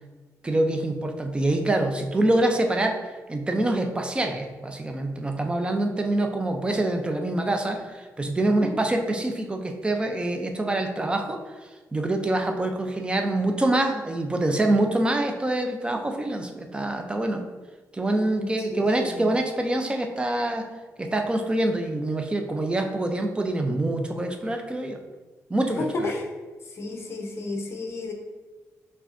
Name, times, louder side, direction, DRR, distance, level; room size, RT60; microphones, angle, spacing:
voice 1, 0.4-3.0 3.3-11.4 11.9-17.4 17.9-20.7 21.0-25.0 25.5-26.1, right 1 dB, 15° right, 4 dB, 0.5 m, -25 dB
voice 2, 18.4-19.3 25.8-26.3 26.7-28.1, left 2 dB, 45° left, 2 dB, 0.8 m, -32 dB
6.0 x 3.3 x 2.6 m, 1.3 s
wide cardioid pair, 135°, 6 cm